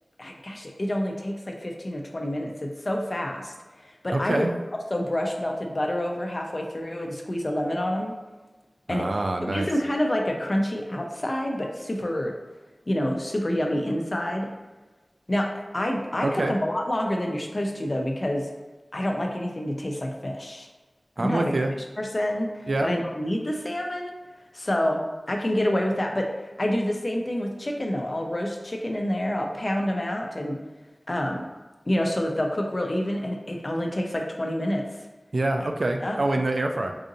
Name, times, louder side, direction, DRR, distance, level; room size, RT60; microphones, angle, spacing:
voice 1, 0.2-4.5 4.9-8.1 8.9-12.3 12.9-14.5 15.3-15.5 15.7-18.5 18.9-20.7 21.2-21.5 22.0-24.1 24.5-25.0 25.3-26.3 26.6-30.6 31.1-31.5 31.9-34.9 36.0-36.2, left 1 dB, 45° left, 2 dB, 0.6 m, -28 dB
voice 2, 4.1-4.5 8.9-9.7 16.2-16.5 21.2-21.7 22.7-22.9 35.3-36.9, right 2 dB, 80° right, 4 dB, 0.4 m, -25 dB
4.8 x 2.6 x 2.7 m, 1.2 s
wide cardioid pair, 50°, 0 cm